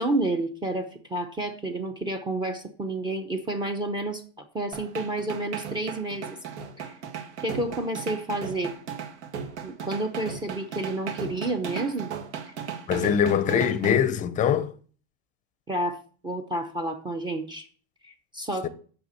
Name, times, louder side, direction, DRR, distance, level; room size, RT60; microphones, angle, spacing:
voice 1, 0.0-6.4 6.8-6.9 7.4-8.7 9.6-12.1 12.4-12.5 15.7-17.7 18.0-18.7, right 1 dB, 15° right, 0.7 m, -30 dB
sound 1, 4.7-14.0, right 7 dB, 80° right, 2.0 m, -36 dB
voice 2, 12.9-14.7 18.6-18.7, left 8 dB, 25° left, 0.6 m, -23 dB
7.8 x 6.0 x 6.9 m
supercardioid pair, 155°, 33 cm